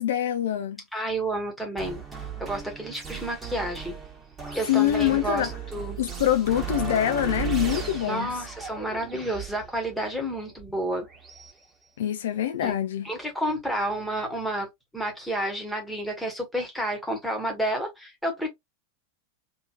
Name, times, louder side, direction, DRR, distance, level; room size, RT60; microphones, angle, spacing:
voice 1, 0.0-0.8 4.7-5.5 6.0-8.3 12.0-13.1, left 11 dB, 60° left, 0.4 m, -25 dB
voice 2, 0.9-2.0 2.4-3.9 4.5-6.0 8.0-11.1 12.6-12.7 13.0-14.7 14.9-18.5, right 1 dB, ahead, 1.3 m, -30 dB
sound 1, 1.8-11.5, right 6 dB, 15° right, 1.2 m, -36 dB
2.9 x 2.8 x 2.4 m
figure-of-eight pair, 90°, 0 cm